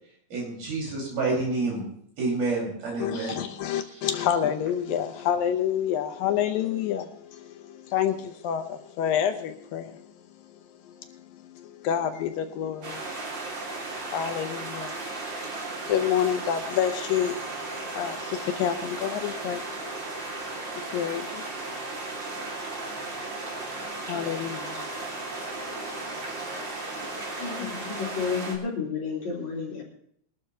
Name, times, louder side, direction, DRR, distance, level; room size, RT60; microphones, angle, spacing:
voice 1, 0.3-1.8 2.2-3.4 4.0-4.1, right 3 dB, 75° right, 7.0 m, -28 dB
voice 2, 3.0-28.3, left 9 dB, 80° left, 2.4 m, -30 dB
sound 1, 12.8-28.6, right 3 dB, 35° right, 2.4 m, -35 dB
voice 3, 27.4-29.8, left 5 dB, 50° left, 4.4 m, -31 dB
22.0 x 12.5 x 3.0 m
omnidirectional pair, 4.3 m